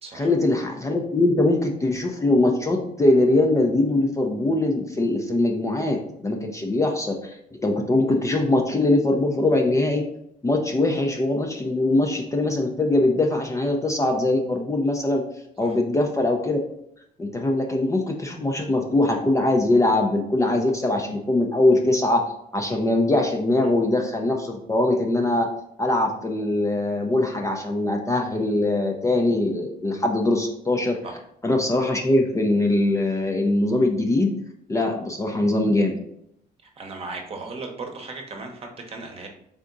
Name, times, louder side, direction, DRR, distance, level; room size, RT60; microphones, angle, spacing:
voice 1, 0.1-10.0 10.4-15.2 15.6-16.6 17.2-22.2 22.5-25.5 25.8-31.0 31.4-34.3 34.7-36.0, left 2 dB, 20° left, 2 dB, 0.5 m, -22 dB
voice 2, 36.8-39.3, right 3 dB, 35° right, 3 dB, 1.0 m, -36 dB
3.7 x 3.5 x 3.8 m, 0.75 s
cardioid pair, 110°, 17 cm